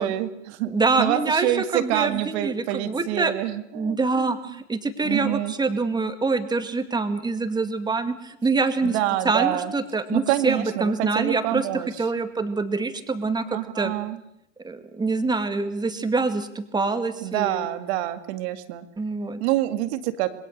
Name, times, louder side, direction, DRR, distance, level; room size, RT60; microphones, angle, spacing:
voice 1, 0.0-0.7 1.0-4.6 5.0-5.5 8.8-9.7 10.1-11.9 13.5-14.2 17.2-18.9 19.4-20.3, right 14 dB, 60° right, 9 dB, 2.2 m, -27 dB
voice 2, 0.7-3.3 3.7-9.0 9.2-13.9 14.6-17.6 19.0-19.4, right 3 dB, 10° right, 8 dB, 2.2 m, -25 dB
27.0 x 21.5 x 6.7 m, 0.77 s
hypercardioid pair, 120°, 36 cm